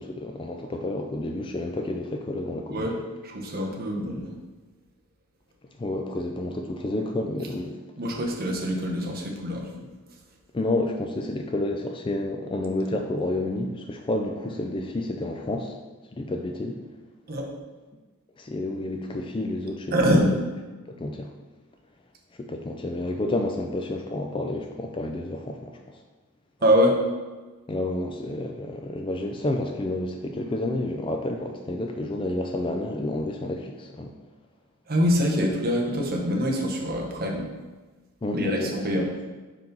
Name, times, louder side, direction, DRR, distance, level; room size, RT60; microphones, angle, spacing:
voice 1, 0.0-3.0 5.8-7.8 10.5-15.8 16.1-16.8 18.4-19.9 20.9-21.3 22.4-26.0 27.7-34.1 38.2-39.1, left 2 dB, 20° left, 4 dB, 0.3 m, -30 dB
voice 2, 3.2-4.3 8.0-9.7 17.3-17.5 19.9-20.4 26.6-27.0 34.9-37.5 38.3-39.1, equal, 45° right, 1 dB, 0.8 m, -24 dB
5.3 x 4.6 x 3.9 m, 1.3 s
head